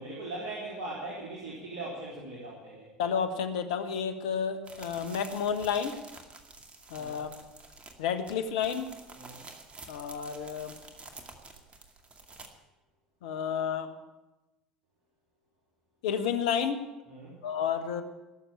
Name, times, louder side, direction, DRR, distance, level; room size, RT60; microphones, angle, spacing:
voice 1, 0.0-2.9 7.0-7.2 9.2-9.4 17.1-17.4, right 2 dB, 60° right, -5 dB, 3.7 m, -40 dB
voice 2, 3.0-5.9 6.9-7.3 8.0-8.9 9.9-10.7 13.2-13.9 16.0-16.8 17.4-18.0, left 7 dB, 70° left, 8 dB, 1.2 m, -31 dB
sound 1, 4.6-12.5, right 3 dB, 30° right, 2.2 m, -49 dB
18.0 x 7.1 x 8.9 m, 1.1 s
hypercardioid pair, 65°, 4 cm